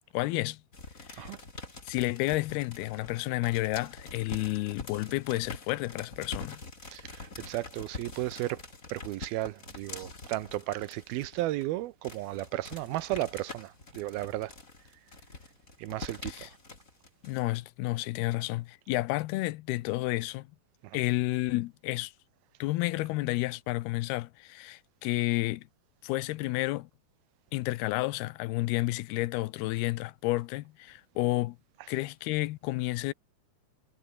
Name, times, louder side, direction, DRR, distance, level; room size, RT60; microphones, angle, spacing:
voice 1, 0.1-0.6 1.1-1.3 1.9-6.6 16.3-16.5 17.2-20.5 20.9-22.1 22.6-25.7 26.0-26.9 27.5-31.6 31.9-33.1, left 19 dB, 90° left, 2.7 m, -31 dB
sound 1, 0.7-11.6 12.0-17.4, left 3 dB, 20° left, 3.6 m, -45 dB
voice 2, 6.9-8.6 8.9-14.5 15.8-16.6 20.8-21.0, right 16 dB, 80° right, 2.6 m, -34 dB
omnidirectional pair, 4.5 m